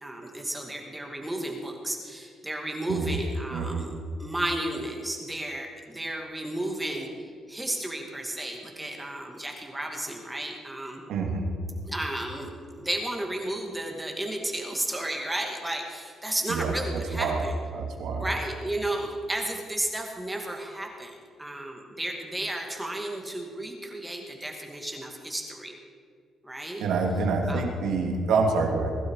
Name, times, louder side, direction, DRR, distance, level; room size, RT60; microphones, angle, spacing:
voice 1, 0.0-11.0 11.9-12.5 12.8-17.6 18.2-25.8 26.4-26.8 27.5-27.6, right 1 dB, 10° right, 1 dB, 2.3 m, -33 dB
voice 2, 3.5-3.9 11.1-11.5 16.5-16.7 17.1-17.4 17.7-18.3 26.8-28.9, right 4 dB, 80° right, 1 dB, 2.9 m, -26 dB
22.0 x 12.0 x 4.9 m, 2.3 s
cardioid pair, 90°, 0 cm